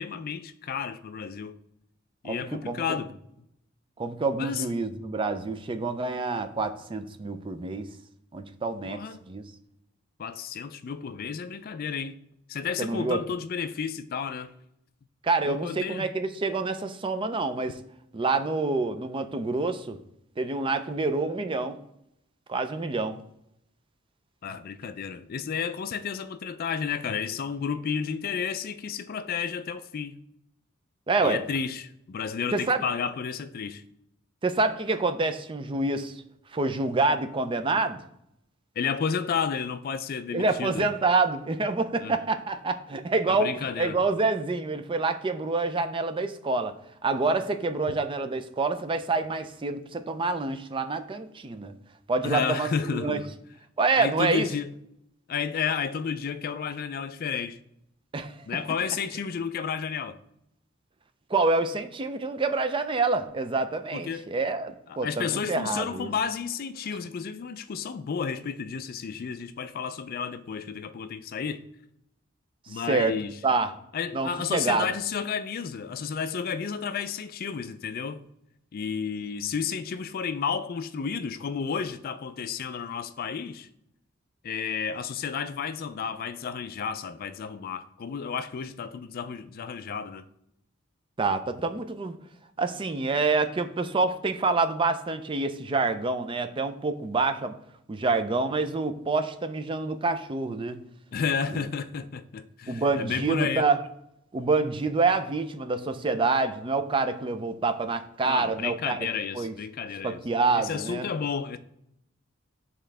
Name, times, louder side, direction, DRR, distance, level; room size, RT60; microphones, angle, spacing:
voice 1, 0.0-1.6 2.2-3.2 4.4-4.7 8.8-9.2 10.2-12.2 12.5-14.5 15.4-16.1 24.4-30.2 31.2-33.8 38.8-40.9 42.0-42.2 43.3-44.0 52.2-53.3 53.9-54.7 55.3-57.6 58.4-60.1 63.9-64.3 64.9-71.6 72.7-73.4 73.9-78.2 78.7-83.7 84.4-90.2 101.1-103.7 108.2-110.2 110.5-111.6, left 6 dB, 45° left, 0.4 m, -32 dB
voice 2, 2.2-3.0 4.0-7.9 8.3-9.0 9.3-9.4 12.8-13.2 15.2-17.7 18.1-20.0 20.4-21.8 22.5-23.2 31.1-31.4 32.5-32.8 34.4-36.1 36.5-38.0 40.3-46.7 47.0-51.7 52.1-53.2 53.8-54.5 58.1-58.3 61.3-66.1 72.9-73.2 73.4-73.7 74.1-74.9 91.2-92.2 92.6-97.5 97.9-100.8 101.5-101.6 102.7-103.8 104.3-109.0 109.3-109.5 110.0-111.1, right 3 dB, 25° right, 0.4 m, -27 dB
10.0 x 3.7 x 3.3 m
head